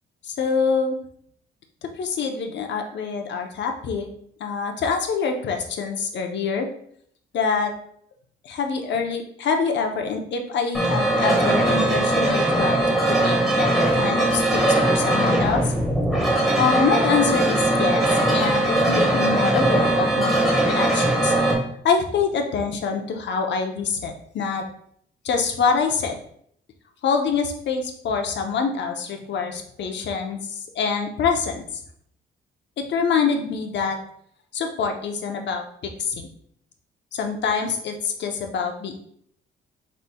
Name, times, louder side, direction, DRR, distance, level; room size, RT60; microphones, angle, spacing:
voice 1, 0.2-1.0 1.8-4.1 4.4-6.7 7.3-7.7 8.4-15.7 16.6-21.3 21.8-24.6 25.2-26.2 27.0-31.6 32.8-34.0 34.5-36.3 37.1-39.0, left 5 dB, 65° left, 4 dB, 0.7 m, -25 dB
sound 1, 10.7-21.5, right 1 dB, ahead, 1.5 m, -20 dB
5.4 x 3.2 x 2.2 m, 0.66 s
cardioid pair, 90°, 20 cm